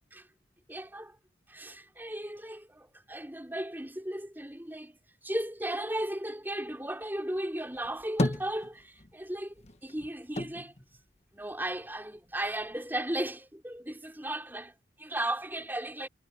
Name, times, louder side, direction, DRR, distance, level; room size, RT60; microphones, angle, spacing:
voice 1, 0.7-1.2 1.5-5.0 5.2-9.5 9.8-10.7 11.3-16.1, right 1 dB, 10° right, 4.1 m, -35 dB
sound 1, 7.7-9.2 9.5-11.9 12.3-13.2, left 1 dB, 35° left, 1.3 m, -35 dB
head